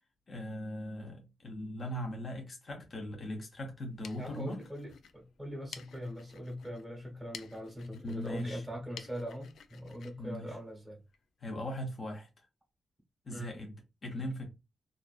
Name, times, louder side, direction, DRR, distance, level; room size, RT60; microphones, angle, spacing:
voice 1, 0.3-4.6 7.9-8.6 10.2-10.6 11.4-12.5 13.2-13.7 14.0-14.5, left 1 dB, 35° left, 0.6 m, -39 dB
sound 1, 3.7-11.2, left 7 dB, 80° left, 0.3 m, -53 dB
voice 2, 4.2-11.0 13.3-13.6, equal, ahead, 0.9 m, -41 dB
2.4 x 2.4 x 2.3 m
wide cardioid pair, 170°, 0 cm